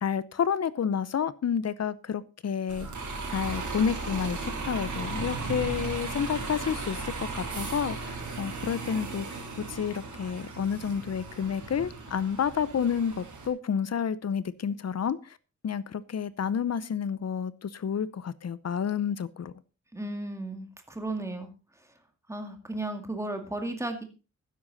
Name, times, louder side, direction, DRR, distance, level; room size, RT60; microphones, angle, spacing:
voice 1, 0.0-3.0 3.3-9.4 9.7-15.4 15.6-19.5, left 7 dB, 60° left, 17 dB, 0.8 m, -30 dB
Bus, 2.7-13.5, right 3 dB, 90° right, 3.7 m, -36 dB
voice 2, 19.9-21.5 22.3-24.0, right 2 dB, 10° right, 5 dB, 2.2 m, -34 dB
12.5 x 10.0 x 4.1 m, 0.32 s
wide cardioid pair, 145°, 29 cm